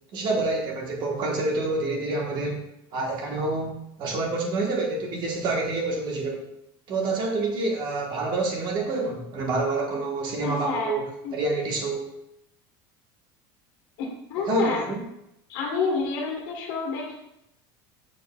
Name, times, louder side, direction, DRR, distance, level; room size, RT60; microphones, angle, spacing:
voice 1, 0.1-2.6 2.9-6.5 6.9-12.2 14.5-15.0, right 2 dB, 40° right, 0 dB, 1.4 m, -27 dB
voice 2, 10.4-10.9 11.2-11.3 14.0-14.8 15.5-17.1, left 4 dB, 65° left, -2 dB, 1.6 m, -28 dB
6.4 x 6.3 x 2.4 m, 0.82 s
cardioid pair, 155°, 11 cm